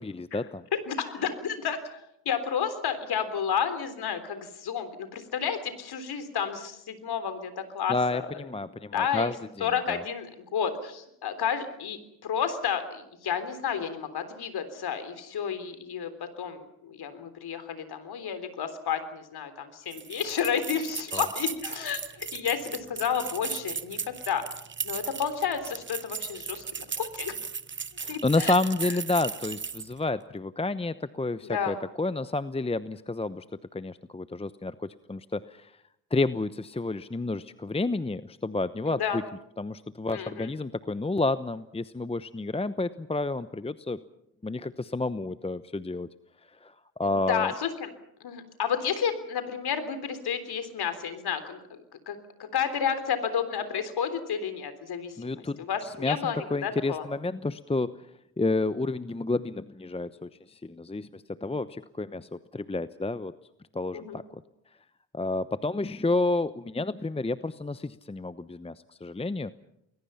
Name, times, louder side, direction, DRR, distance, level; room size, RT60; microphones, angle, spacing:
voice 1, 0.0-0.6 7.9-10.0 21.1-21.2 28.0-33.4 33.7-34.7 35.1-35.7 36.1-39.2 39.6-44.0 44.4-46.1 46.6-46.7 47.0-47.5 55.2-58.0 58.4-63.3 63.7-64.2 65.1-68.7 69.0-69.5, left 2 dB, 15° left, 14 dB, 0.9 m, -30 dB
voice 2, 0.7-8.3 8.9-9.3 9.6-16.1 16.4-24.0 24.3-24.4 24.8-27.4 28.1-28.5 28.9-29.0 31.4-31.8 38.9-39.2 40.1-40.5 47.0-47.9 48.2-57.1 63.9-64.2, left 7 dB, 60° left, 10 dB, 3.6 m, -31 dB
sound 1, 19.9-30.0, right 5 dB, 25° right, 1.1 m, -36 dB
30.0 x 21.5 x 5.7 m, 0.79 s
hypercardioid pair, 50°, 44 cm